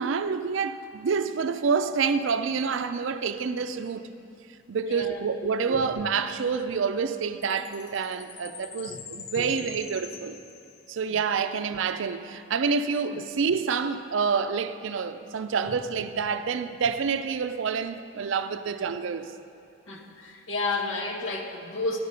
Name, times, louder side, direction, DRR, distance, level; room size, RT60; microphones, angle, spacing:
voice 1, 0.0-4.0 4.7-10.4 10.9-19.3, right 5 dB, 65° right, 0.4 m, -28 dB
voice 2, 4.8-5.8 8.9-9.0 9.4-9.5 11.1-11.2 13.1-13.2 19.9-22.0, left 3 dB, 65° left, 1.0 m, -32 dB
Chime, 7.4-11.1, left 8 dB, 85° left, 0.6 m, -45 dB
10.5 x 6.6 x 5.5 m
head